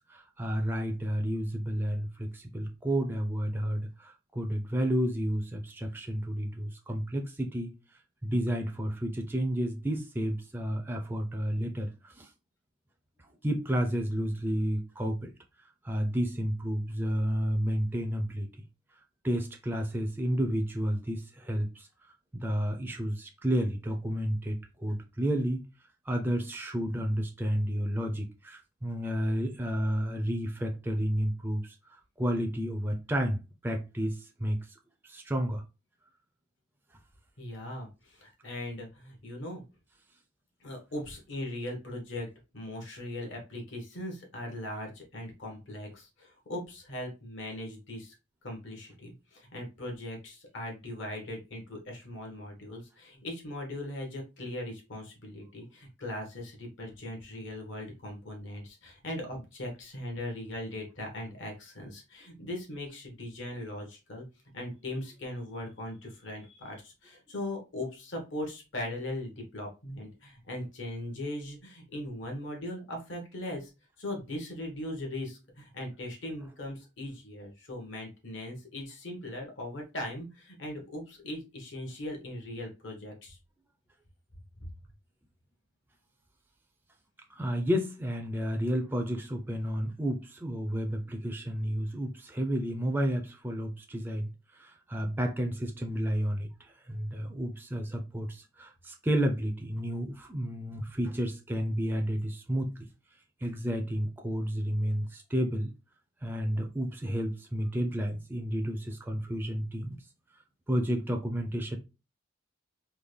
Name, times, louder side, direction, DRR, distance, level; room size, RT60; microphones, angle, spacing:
voice 1, 0.1-7.7 8.2-12.3 13.2-15.3 15.8-18.5 19.2-21.9 22.3-25.6 26.1-31.7 32.2-34.6 35.0-35.6 87.3-102.9 103.4-105.7 106.2-110.0 110.7-111.8, equal, 10° right, 0.4 m, -31 dB
voice 2, 37.4-39.6 40.6-42.3 42.5-48.1 48.4-64.2 64.5-73.7 74.0-83.4 84.6-84.7, left 1 dB, 65° left, 1.1 m, -39 dB
3.5 x 2.2 x 3.2 m
head